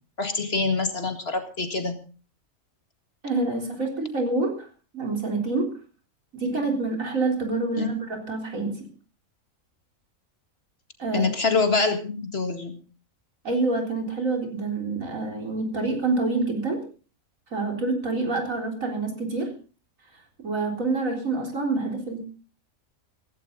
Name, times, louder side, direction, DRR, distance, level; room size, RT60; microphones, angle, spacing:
voice 1, 0.2-2.0 7.8-7.9 11.1-12.8, left 4 dB, 50° left, 7 dB, 2.2 m, -25 dB
voice 2, 3.2-4.7 4.9-5.7 6.3-8.7 11.0-11.3 13.4-16.8 17.5-19.5 20.4-22.2, right 3 dB, 75° right, 3 dB, 4.2 m, -27 dB
16.5 x 15.5 x 3.9 m, 0.37 s
omnidirectional pair, 1.4 m